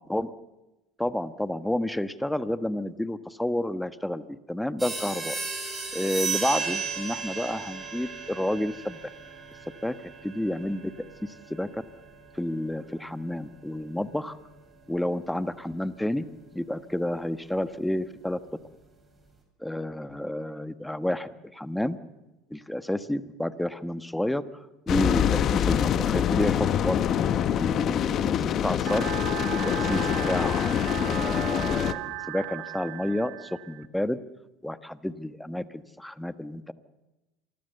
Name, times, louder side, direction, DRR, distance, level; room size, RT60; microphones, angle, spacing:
voice 1, 1.0-5.4 5.9-9.0 9.8-9.9 10.2-10.9 11.2-11.8 12.3-14.4 14.9-16.3 16.5-18.4 19.6-22.0 22.5-24.4 24.9-27.2 27.6-29.2 29.5-34.2 34.6-36.7, left 1 dB, 5° left, 12 dB, 1.4 m, -30 dB
sound 1, 4.8-15.0, right 5 dB, 20° right, 7.9 m, -36 dB
sound 2, 24.9-31.9, left 9 dB, 50° left, 1.3 m, -25 dB
sound 3, 28.9-33.9, right 18 dB, 70° right, 1.1 m, -36 dB
27.0 x 21.0 x 6.9 m, 1.0 s
hypercardioid pair, 85°, 0 cm